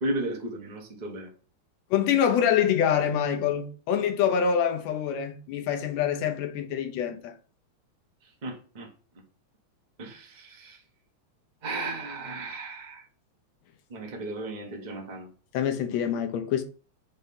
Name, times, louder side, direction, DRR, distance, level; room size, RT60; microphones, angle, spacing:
voice 1, 0.0-1.3 8.4-8.9 10.0-10.8 11.6-13.0 13.9-15.3, right 2 dB, 30° right, 0.8 m, -34 dB
voice 2, 1.9-7.4 15.5-16.6, left 8 dB, 70° left, 1.9 m, -25 dB
5.4 x 3.3 x 5.5 m
omnidirectional pair, 3.4 m